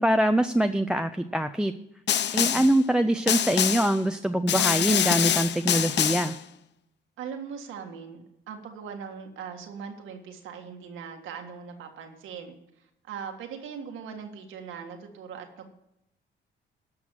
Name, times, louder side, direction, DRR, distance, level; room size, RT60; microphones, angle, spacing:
voice 1, 0.0-1.7 2.3-6.4, right 1 dB, 5° right, 9 dB, 0.5 m, -24 dB
Snare drum, 2.1-2.8 3.3-4.0 4.5-6.4, left 10 dB, 60° left, 0.6 m, -25 dB
voice 2, 2.3-2.7 7.2-15.7, right 6 dB, 85° right, 4 dB, 1.8 m, -40 dB
12.5 x 6.1 x 7.3 m, 0.83 s
cardioid pair, 90°, 20 cm